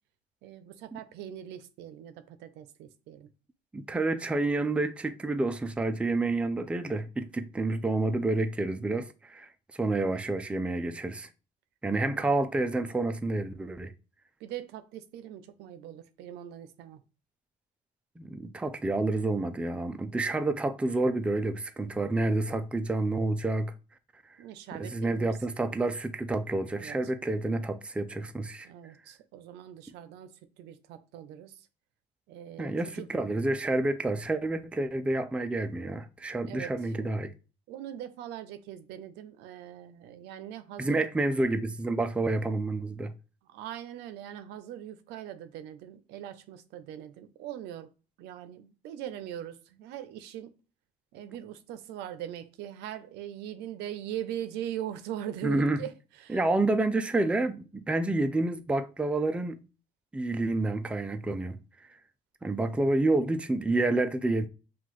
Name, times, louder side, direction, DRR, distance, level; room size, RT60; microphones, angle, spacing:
voice 1, 0.4-3.3 12.1-12.4 14.4-17.0 24.4-25.4 26.7-27.0 28.6-30.3 30.6-31.7 32.3-33.1 36.5-37.2 37.7-41.1 43.5-47.9 48.2-50.6 51.1-56.4, right 11 dB, 85° right, 0.5 m, -41 dB
voice 2, 3.7-11.3 11.8-13.9 18.2-23.7 24.9-28.7 32.6-37.3 40.8-43.1 55.4-55.8 56.3-59.6 60.1-61.6 62.4-64.5, right 2 dB, 5° right, 0.3 m, -29 dB
5.7 x 2.3 x 3.0 m
cardioid pair, 110°, 17 cm